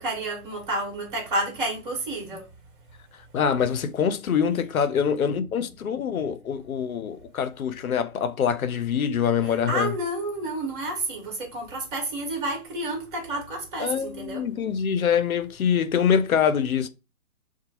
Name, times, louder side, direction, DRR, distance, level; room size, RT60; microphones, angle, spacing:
voice 1, 0.0-2.5 9.4-14.4, right 1 dB, 35° right, 1.5 m, -30 dB
voice 2, 3.3-9.9 13.8-16.9, left 7 dB, 70° left, 0.5 m, -24 dB
2.7 x 2.2 x 2.9 m
figure-of-eight pair, 145°, 44 cm